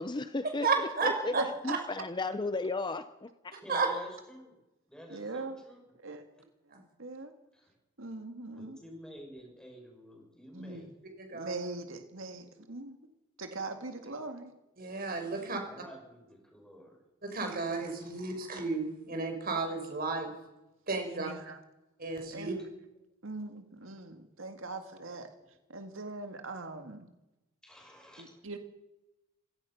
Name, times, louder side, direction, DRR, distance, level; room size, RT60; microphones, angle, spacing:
voice 1, 0.0-0.7 1.2-1.3 1.6-3.5, left 3 dB, 20° left, 0.7 m, -34 dB
voice 2, 0.6-1.4 3.5-3.9 6.7-6.8 11.2-11.5 14.8-15.6 17.2-20.3 20.9-21.3 22.0-22.5, right 4 dB, 45° right, 5.5 m, -33 dB
voice 3, 3.6-4.6 4.9-5.8 7.5-7.7 8.5-11.1 15.4-17.0 22.2-22.6 27.6-28.3, equal, 5° left, 6.8 m, -50 dB
voice 4, 5.1-5.6 6.0-6.2 7.0-7.3 8.0-8.8 10.5-10.8 11.3-13.0 13.4-14.5 21.1-21.6 22.3-22.6 23.2-25.3 25.7-27.1 28.2-28.6, right 2 dB, 70° right, 1.9 m, -41 dB
26.5 x 17.0 x 5.9 m
head